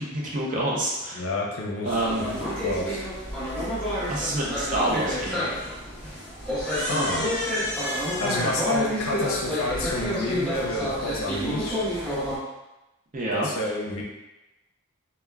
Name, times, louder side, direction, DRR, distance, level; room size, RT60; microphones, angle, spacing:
voice 1, 0.0-1.3 1.8-2.4 4.1-5.5 13.1-13.5, right 1 dB, 40° right, -4 dB, 0.5 m, -27 dB
voice 2, 1.2-3.0 6.9-7.3 8.2-11.8 13.3-14.0, left 2 dB, 70° left, -2 dB, 0.5 m, -29 dB
sound 1, 1.8-12.4, equal, 5° left, 0.6 m, -29 dB
3.4 x 2.1 x 2.3 m, 1.0 s
head